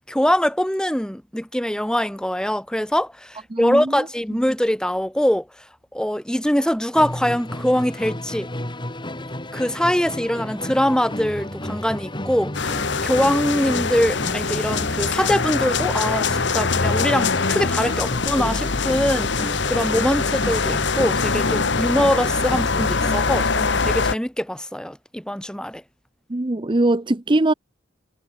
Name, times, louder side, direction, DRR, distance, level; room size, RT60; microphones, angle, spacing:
voice 1, 0.1-5.5 5.9-8.5 9.2-25.8, equal, 5° left, 1.9 m, -23 dB
voice 2, 3.5-4.0 26.3-27.5, right 2 dB, 25° right, 0.8 m, -21 dB
Musical instrument, 6.9-23.6, left 1 dB, 25° left, 5.4 m, -32 dB
sound 1, 12.5-24.2, left 4 dB, 65° left, 1.4 m, -23 dB
head